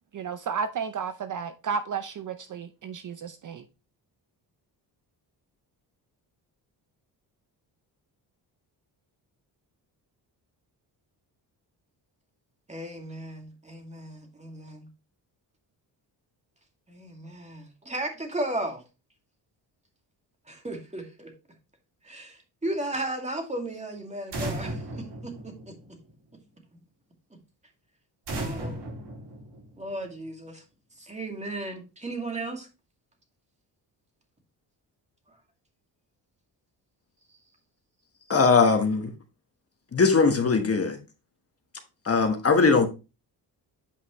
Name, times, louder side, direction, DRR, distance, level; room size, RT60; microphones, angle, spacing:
voice 1, 0.1-3.6, right 6 dB, 45° right, 0.7 m, -32 dB
voice 2, 12.7-14.9 16.9-18.8 20.5-21.3 22.0-26.0 28.3-28.8 29.8-30.6 31.0-32.7, right 1 dB, 15° right, 2.2 m, -35 dB
sound 1, 24.3-26.1 28.3-30.0, right 1 dB, 80° right, 4.2 m, -35 dB
voice 3, 38.3-39.1 39.9-41.0 42.1-42.9, left 4 dB, 35° left, 1.3 m, -20 dB
8.5 x 5.2 x 3.1 m
cardioid pair, 90°, 43 cm